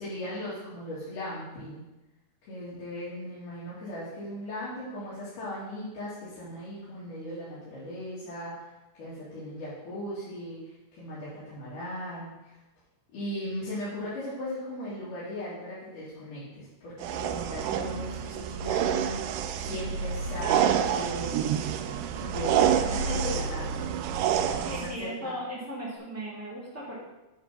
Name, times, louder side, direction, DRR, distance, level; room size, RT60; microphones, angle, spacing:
voice 1, 0.0-1.8 2.4-8.7 8.9-12.6 13.1-21.7 22.2-23.8 24.6-25.3, left 1 dB, 80° left, -10 dB, 3.7 m, -38 dB
sound 1, 17.0-24.9, right 8 dB, 85° right, 2.1 m, -28 dB
voice 2, 24.7-27.0, equal, 5° right, -7 dB, 1.5 m, -37 dB
9.0 x 3.6 x 5.6 m, 1.0 s
omnidirectional pair, 3.6 m